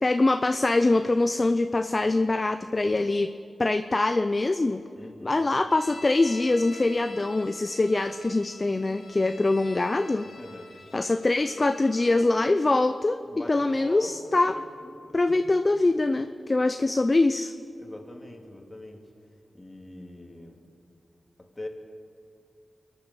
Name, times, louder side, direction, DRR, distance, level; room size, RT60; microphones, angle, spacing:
voice 1, 0.0-3.3 3.6-4.8 5.2-10.3 10.9-13.2 13.5-14.5 15.1-17.5, left 2 dB, 35° left, 9 dB, 0.6 m, -23 dB
voice 2, 4.9-5.4 10.4-10.7 13.3-15.4 17.8-19.0 19.5-20.6 21.4-21.7, left 1 dB, 20° left, 2 dB, 2.5 m, -42 dB
sound 1, 5.7-12.3, left 2 dB, 65° left, 1.7 m, -47 dB
24.0 x 8.8 x 6.7 m, 2.5 s
cardioid pair, 50°, 0 cm